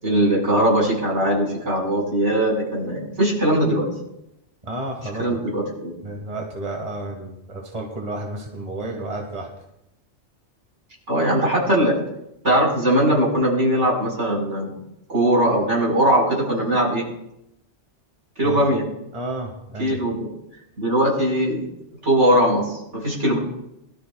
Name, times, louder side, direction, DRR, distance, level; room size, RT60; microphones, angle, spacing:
voice 1, 0.0-3.9 5.2-5.9 11.1-12.0 12.4-14.7 15.1-17.1 18.4-18.8 19.8-20.3 20.8-21.7 22.0-23.4, right 1 dB, 75° right, -3 dB, 5.4 m, -20 dB
voice 2, 4.6-5.4 6.0-9.5 18.4-18.6 19.1-20.0, right 2 dB, 30° right, 1 dB, 1.8 m, -31 dB
22.5 x 13.0 x 2.3 m, 0.83 s
omnidirectional pair, 1.2 m